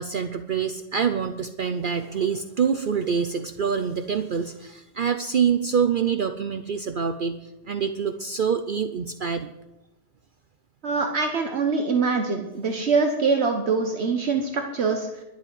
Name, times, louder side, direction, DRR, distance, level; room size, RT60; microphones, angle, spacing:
voice 1, 0.0-9.5, right 6 dB, 55° right, 9 dB, 0.8 m, -26 dB
voice 2, 10.8-15.1, right 4 dB, 70° right, 4 dB, 1.4 m, -24 dB
12.0 x 8.3 x 9.2 m, 0.93 s
omnidirectional pair, 1.1 m